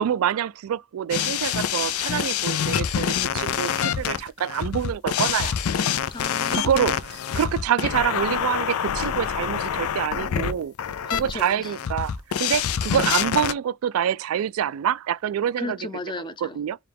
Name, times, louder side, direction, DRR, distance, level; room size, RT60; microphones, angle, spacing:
voice 1, 0.0-5.6 6.5-10.7 11.0-15.8 16.4-16.8, right 9 dB, 80° right, 0.3 m, -26 dB
sound 1, 1.1-13.5, left 8 dB, 90° left, 0.4 m, -26 dB
voice 2, 6.1-7.0 11.1-11.8 15.6-16.6, left 2 dB, 20° left, 0.6 m, -35 dB
4.7 x 2.3 x 3.4 m
head